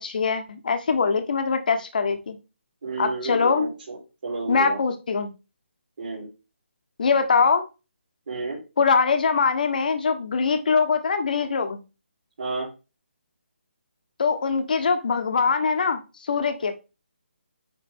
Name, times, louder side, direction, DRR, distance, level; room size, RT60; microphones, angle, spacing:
voice 1, 0.0-2.4 3.0-3.7 4.5-5.3 7.0-7.7 8.8-11.8 14.2-16.7, left 5 dB, 45° left, 7 dB, 1.2 m, -22 dB
voice 2, 2.8-4.8 6.0-6.3 8.3-8.6 12.4-12.7, right 3 dB, 50° right, -5 dB, 3.6 m, -31 dB
9.8 x 3.5 x 3.6 m, 0.29 s
hypercardioid pair, 170°, 6 cm